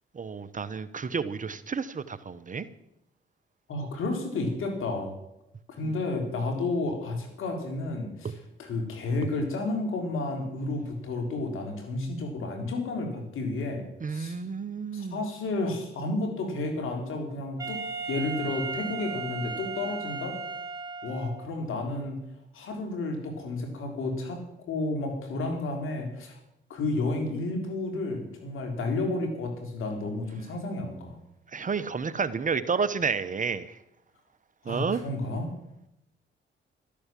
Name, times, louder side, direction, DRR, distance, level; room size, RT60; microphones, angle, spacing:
voice 1, 0.1-2.7 5.8-5.9 14.0-15.2 31.5-33.8 34.6-35.0, right 5 dB, 40° right, 14 dB, 1.0 m, -30 dB
voice 2, 3.7-5.1 5.8-8.3 8.6-14.4 14.9-17.8 18.1-20.4 21.0-22.2 22.5-24.4 24.7-26.4 26.7-31.2 34.7-35.5, left 2 dB, 75° left, 4 dB, 3.8 m, -31 dB
Wind instrument woodwind instrument, 17.6-21.5, right 4 dB, 15° right, 3.4 m, -36 dB
12.5 x 12.0 x 7.6 m, 0.84 s
supercardioid pair, 65°, 21 cm